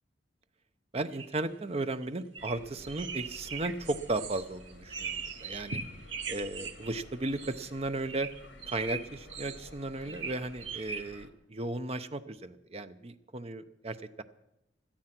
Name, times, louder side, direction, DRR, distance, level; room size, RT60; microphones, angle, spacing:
voice 1, 0.9-5.8 6.3-8.3 8.6-14.2, right 2 dB, 35° right, 11 dB, 0.7 m, -35 dB
sound 1, 1.1-1.3 2.0-2.1 2.4-2.6 2.8-7.0 7.2-7.7 8.1-9.7 10.1-11.0, right 5 dB, 85° right, 1.1 m, -40 dB
sound 2, 2.4-11.3, left 2 dB, 75° left, 1.7 m, -53 dB
17.5 x 12.0 x 5.9 m, 0.84 s
head